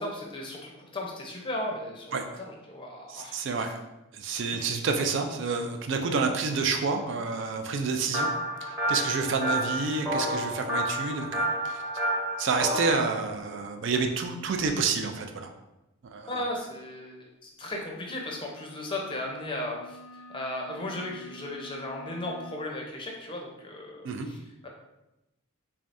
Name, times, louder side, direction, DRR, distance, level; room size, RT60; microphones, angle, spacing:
voice 1, 0.0-2.1 2.4-3.4 4.5-4.7 16.3-20.0 20.3-24.7, left 1 dB, 25° left, 0 dB, 0.5 m, -36 dB
voice 2, 3.1-3.8 4.1-8.3 8.6-11.8 12.4-15.5 16.0-16.4 24.0-24.3, right 4 dB, 60° right, 5 dB, 0.3 m, -29 dB
sound 1, 8.1-12.9, right 1 dB, 15° right, 0.8 m, -29 dB
sound 2, 18.0-22.7, right 1 dB, 80° left, 0.5 m, -48 dB
3.5 x 3.3 x 2.6 m, 0.94 s
head